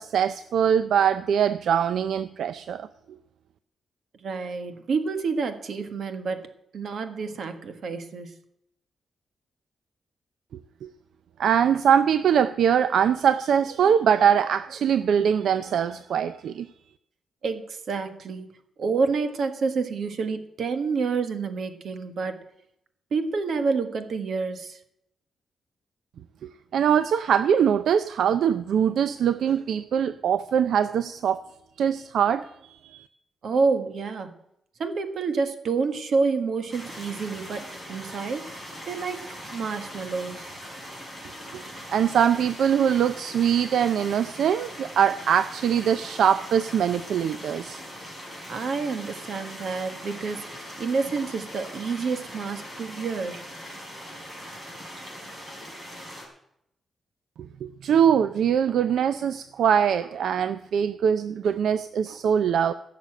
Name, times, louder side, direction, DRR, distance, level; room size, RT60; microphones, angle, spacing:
voice 1, 0.0-2.9 10.8-10.9 11.4-16.7 26.4-31.4 31.8-33.1 41.5-41.6 41.9-47.8 57.6-62.7, right 8 dB, 75° right, 12 dB, 0.5 m, -22 dB
voice 2, 4.2-8.4 17.4-18.5 18.8-22.4 23.1-24.8 33.4-34.3 34.8-40.5 48.5-53.4, right 4 dB, 55° right, 8 dB, 1.5 m, -28 dB
sound 1, 36.7-56.2, equal, 20° right, 4.2 m, -41 dB
16.0 x 6.9 x 7.6 m, 0.78 s
wide cardioid pair, 160°, 0 cm